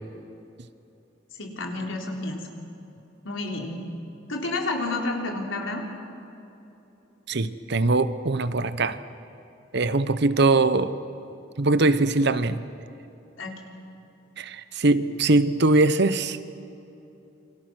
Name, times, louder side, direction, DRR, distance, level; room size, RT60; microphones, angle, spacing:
voice 1, 1.4-2.4 3.2-3.8 4.3-5.8 13.4-13.5, left 2 dB, 90° left, 3.9 m, -30 dB
voice 2, 7.3-9.0 9.7-10.9 11.6-12.6 14.4-16.5, right 2 dB, 60° right, 1.0 m, -22 dB
28.5 x 25.5 x 6.3 m
head